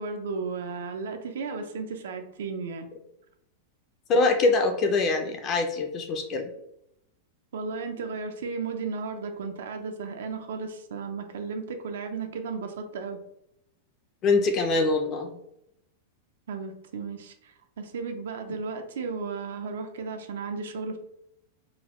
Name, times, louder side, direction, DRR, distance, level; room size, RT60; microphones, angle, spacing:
voice 1, 0.0-2.9 7.5-13.2 16.5-21.0, right 4 dB, 90° right, 5 dB, 0.4 m, -34 dB
voice 2, 4.1-6.5 14.2-15.3, left 3 dB, 25° left, 4 dB, 0.3 m, -24 dB
3.9 x 2.0 x 2.9 m, 0.80 s
supercardioid pair, 175°, 0 cm